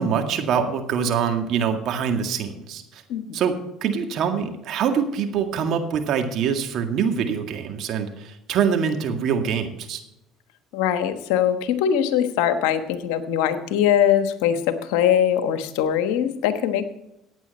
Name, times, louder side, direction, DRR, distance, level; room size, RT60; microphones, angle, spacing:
voice 1, 0.0-3.0 3.3-10.0, right 7 dB, 60° right, 5 dB, 1.9 m, -24 dB
voice 2, 3.1-3.4 10.7-16.9, left 9 dB, 75° left, 10 dB, 1.2 m, -22 dB
15.0 x 9.2 x 4.3 m, 0.86 s
hypercardioid pair, 65°, 0 cm